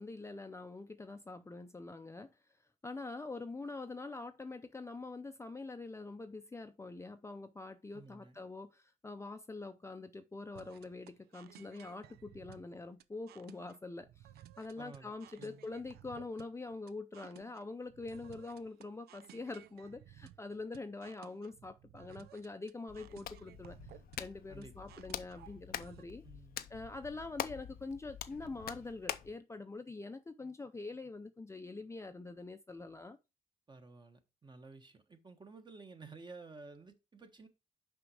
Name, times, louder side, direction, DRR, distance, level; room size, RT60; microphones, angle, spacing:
voice 1, 0.0-2.3 2.8-14.3 14.6-23.8 24.2-26.2 26.7-33.2, left 3 dB, 15° left, 0.6 m, -45 dB
voice 2, 7.9-8.4 14.8-15.7 24.5-24.9 26.2-26.6 33.7-37.5, right 3 dB, 30° right, 1.3 m, -53 dB
sound 1, 10.5-26.0, right 12 dB, 80° right, 0.5 m, -58 dB
Hands, 22.9-29.4, left 11 dB, 70° left, 0.6 m, -45 dB
6.0 x 5.2 x 4.8 m
cardioid pair, 90°, 16 cm